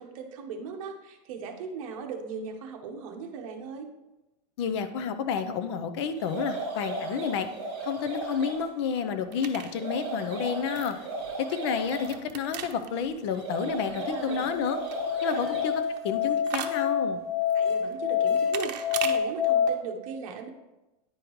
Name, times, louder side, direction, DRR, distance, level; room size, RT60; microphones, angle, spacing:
voice 1, 0.0-3.9 13.8-14.4 15.3-15.5 17.5-20.5, right 5 dB, 50° right, 3 dB, 1.0 m, -38 dB
voice 2, 4.6-7.5 7.8-11.0 11.5-14.8 15.2-15.7 16.0-17.2, left 6 dB, 40° left, 9 dB, 0.5 m, -30 dB
sound 1, 6.2-8.6 9.6-12.1 13.3-15.8, right 2 dB, 30° right, 2.6 m, -35 dB
sound 2, 8.0-19.2, right 9 dB, 80° right, 0.7 m, -42 dB
Musical instrument, 14.0-19.7, left 8 dB, 5° left, 0.8 m, -27 dB
9.9 x 5.0 x 3.1 m, 1.0 s
supercardioid pair, 175°, 21 cm